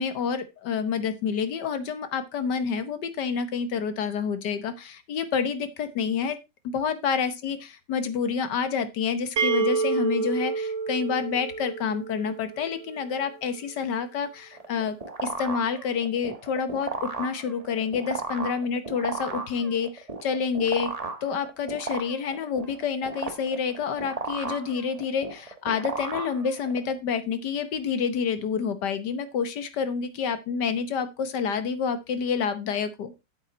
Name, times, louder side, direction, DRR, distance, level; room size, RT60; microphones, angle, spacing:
voice 1, 0.0-6.4 6.6-15.0 15.2-20.9 21.2-33.1, left 6 dB, 75° left, 11 dB, 1.6 m, -28 dB
sound 1, 9.4-13.1, right 5 dB, 50° right, 1.2 m, -28 dB
sound 2, 14.5-26.9, right 3 dB, 25° right, 1.2 m, -35 dB
8.6 x 8.1 x 4.0 m, 0.25 s
omnidirectional pair, 1.9 m